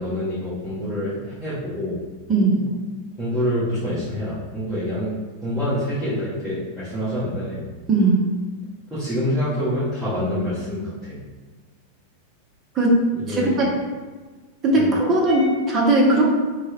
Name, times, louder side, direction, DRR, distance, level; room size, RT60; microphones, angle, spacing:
voice 1, 0.0-2.0 3.2-5.1 5.4-7.7 8.9-11.2 13.1-13.6 14.7-14.9, equal, 5° right, -15 dB, 1.4 m, -26 dB
voice 2, 2.3-2.7 7.9-8.2 12.7-13.0 13.3-13.8 14.6-16.2, right 2 dB, 25° right, -3 dB, 0.8 m, -18 dB
3.1 x 2.3 x 3.0 m, 1.4 s
figure-of-eight pair, 90°, 0 cm